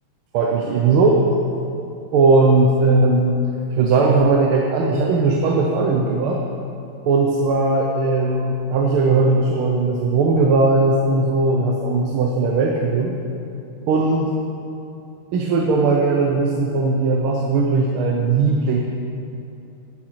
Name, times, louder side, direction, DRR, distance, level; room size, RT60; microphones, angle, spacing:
voice 1, 0.3-1.3 2.1-3.4 3.7-6.4 7.1-13.1 13.9-14.3 15.3-18.8, right 3 dB, 85° right, 0 dB, 1.8 m, -18 dB
11.5 x 10.5 x 4.6 m, 2.9 s
omnidirectional pair, 2.3 m